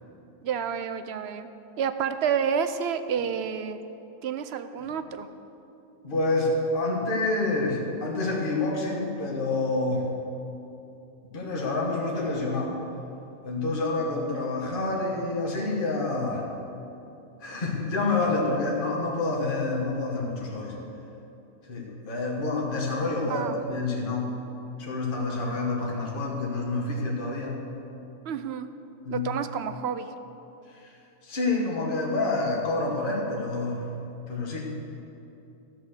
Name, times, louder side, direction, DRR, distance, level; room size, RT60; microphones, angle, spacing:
voice 1, 0.4-1.5 1.8-3.8 4.2-5.3 23.3-23.6 28.2-28.7 29.1-30.1, right 7 dB, 60° right, 10 dB, 0.8 m, -29 dB
voice 2, 6.0-10.1 11.3-12.7 13.4-16.5 17.4-20.7 21.7-24.4 24.8-27.6 29.0-29.3 30.7-30.9 31.2-33.9 34.3-34.7, left 2 dB, 40° left, -2 dB, 1.7 m, -28 dB
12.5 x 8.3 x 6.6 m, 2.9 s
omnidirectional pair, 1.4 m